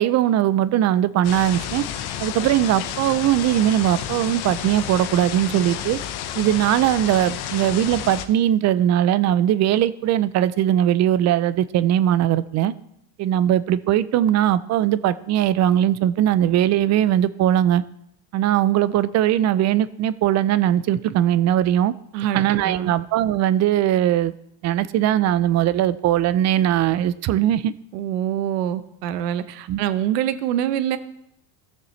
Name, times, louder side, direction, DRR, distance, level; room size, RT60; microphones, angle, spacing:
voice 1, 0.0-1.8 2.2-6.0 6.4-12.7 13.2-17.8 18.3-21.9 22.3-24.3 24.6-27.7 29.7-29.8, right 11 dB, 40° right, 17 dB, 0.4 m, -20 dB
sound 1, 1.2-8.3, left 10 dB, 55° left, 0.9 m, -31 dB
voice 2, 22.1-22.9 27.9-31.0, right 11 dB, 90° right, 13 dB, 0.8 m, -25 dB
15.5 x 6.7 x 3.1 m, 0.80 s
supercardioid pair, 100°, 47 cm